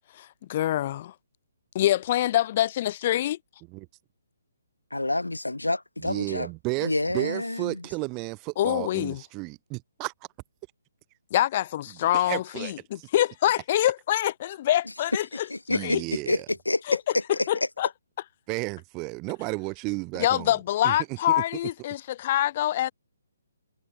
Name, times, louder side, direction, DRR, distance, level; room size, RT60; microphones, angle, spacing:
voice 1, 0.1-1.1 1.7-3.4 8.6-9.2 11.3-15.5 15.8-16.0 16.9-17.0 17.5-17.9 20.2-22.9, left 13 dB, 35° left, 2.3 m, -25 dB
voice 2, 4.9-6.5 6.8-7.8 15.3-16.8 17.1-17.5, left 2 dB, 80° left, 1.0 m, -28 dB
voice 3, 6.0-10.1 12.1-13.1 15.7-16.5 18.5-20.5 20.8-21.0, right 28 dB, 20° right, 0.8 m, -33 dB
figure-of-eight pair, 135°, 0 cm